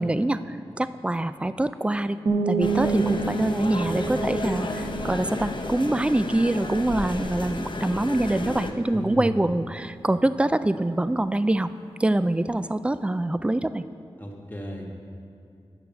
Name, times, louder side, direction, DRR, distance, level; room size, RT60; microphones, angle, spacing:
voice 1, 0.0-2.2 2.5-11.7 12.0-13.9, right 1 dB, 10° right, 13 dB, 0.3 m, -25 dB
sound 1, 2.3-7.9, right 5 dB, 65° right, 1.1 m, -30 dB
sound 2, 2.6-8.7, left 2 dB, 50° left, 0.8 m, -32 dB
voice 2, 8.9-9.4 14.2-14.9, equal, 20° left, 0 dB, 1.4 m, -34 dB
9.0 x 6.3 x 6.9 m, 2.5 s
wide cardioid pair, 75°, 10 cm